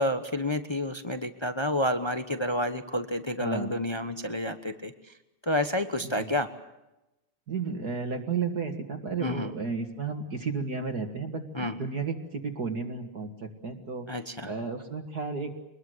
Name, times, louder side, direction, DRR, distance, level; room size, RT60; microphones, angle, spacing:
voice 1, 0.0-4.9 5.5-6.5 9.2-9.5 11.5-11.8 14.1-14.5, left 1 dB, 25° left, 8 dB, 0.6 m, -29 dB
voice 2, 3.4-3.7 6.0-6.3 7.5-15.5, right 5 dB, 45° right, 3 dB, 2.3 m, -33 dB
25.5 x 20.5 x 8.0 m, 0.97 s
omnidirectional pair, 2.4 m